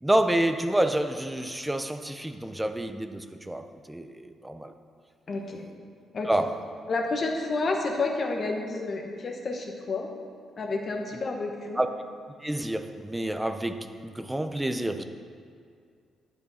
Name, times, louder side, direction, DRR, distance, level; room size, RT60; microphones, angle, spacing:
voice 1, 0.0-4.7 6.3-6.6 11.8-11.9 12.4-15.0, right 1 dB, 5° right, 0.5 m, -28 dB
voice 2, 5.3-5.7 6.1-6.3 6.9-10.1 10.6-11.8, left 3 dB, 40° left, 1.2 m, -30 dB
11.0 x 8.8 x 4.1 m
cardioid pair, 125°, 0 cm